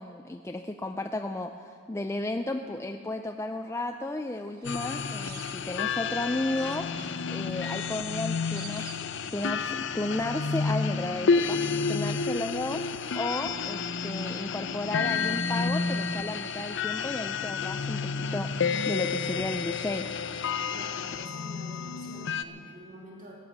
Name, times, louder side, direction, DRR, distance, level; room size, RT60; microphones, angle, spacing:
voice 1, 0.0-9.0 9.3-20.1, left 2 dB, 10° left, 5 dB, 0.4 m, -34 dB
sound 1, 4.3-6.1 6.5-9.9 10.2-10.8 11.1-11.2, right 9 dB, 85° right, 0.9 m, -50 dB
sound 2, 4.6-22.4, left 5 dB, 55° left, 0.6 m, -30 dB
voice 2, 20.7-23.3, equal, 35° right, -2 dB, 2.6 m, -47 dB
19.0 x 9.1 x 7.1 m, 2.2 s
head